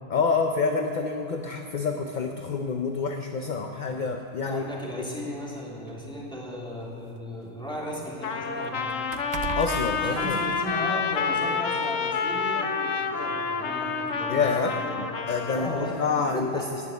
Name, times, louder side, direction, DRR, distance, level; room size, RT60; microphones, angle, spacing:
voice 1, 0.1-4.6 9.5-10.4 14.3-14.7 15.3-16.6, left 5 dB, 45° left, 4 dB, 0.7 m, -27 dB
sound 1, 2.3-2.5 3.5-3.6 4.1-4.2 5.2-7.1 7.5-10.9 11.3-11.5, right 9 dB, 70° right, 0.9 m, -39 dB
voice 2, 4.4-8.9 10.0-15.0 15.4-16.0 16.3-16.9, equal, 5° left, -5 dB, 2.9 m, -36 dB
Trumpet, 8.2-16.0, left 5 dB, 80° left, 1.3 m, -29 dB
17.5 x 6.7 x 9.6 m, 2.8 s
omnidirectional pair, 1.3 m